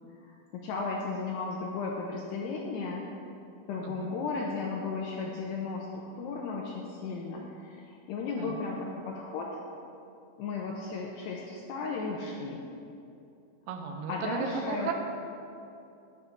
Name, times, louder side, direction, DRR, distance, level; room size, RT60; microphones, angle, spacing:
voice 1, 0.2-3.1 3.7-9.5 10.4-12.6 14.1-14.9, left 4 dB, 80° left, -2 dB, 2.6 m, -35 dB
voice 2, 3.8-4.1 8.4-8.5 13.7-14.9, right 6 dB, 80° right, 4 dB, 3.1 m, -35 dB
11.0 x 5.8 x 6.7 m, 2.6 s
omnidirectional pair, 5.3 m